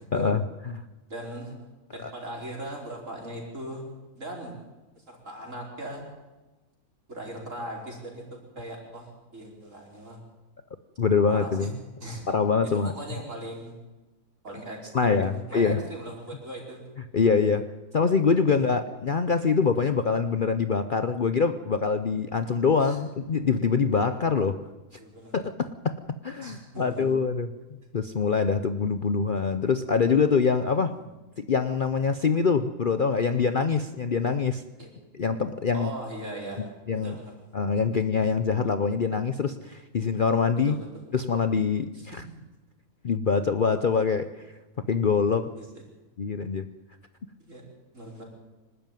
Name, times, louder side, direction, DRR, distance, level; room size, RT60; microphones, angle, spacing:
voice 1, 0.1-0.8 2.0-2.1 11.0-11.8 12.3-12.9 14.9-15.8 17.1-24.6 25.3-25.9 26.2-27.5 27.9-31.0 31.4-34.6 35.1-35.9 36.6-37.2 37.5-40.8 41.1-42.2 43.0-44.5 44.9-45.5 46.2-46.7, left 5 dB, 45° left, 10 dB, 0.8 m, -24 dB
voice 2, 1.1-1.5 1.9-3.8 4.2-4.5 5.1-6.0 7.1-8.2 8.6-10.2 11.3-11.7 12.0-12.3 12.8-13.7 14.4-16.8 18.5-18.7 22.8-23.0 25.0-25.4 26.4-27.0 30.9-31.0 34.8-34.9 35.7-36.7 37.0-37.3 40.7-41.0 41.9-42.1 45.6-45.7 47.4-47.6 47.9-48.2, right 1 dB, 60° right, -1 dB, 5.3 m, -39 dB
25.0 x 12.5 x 9.2 m, 1.1 s
omnidirectional pair, 1.5 m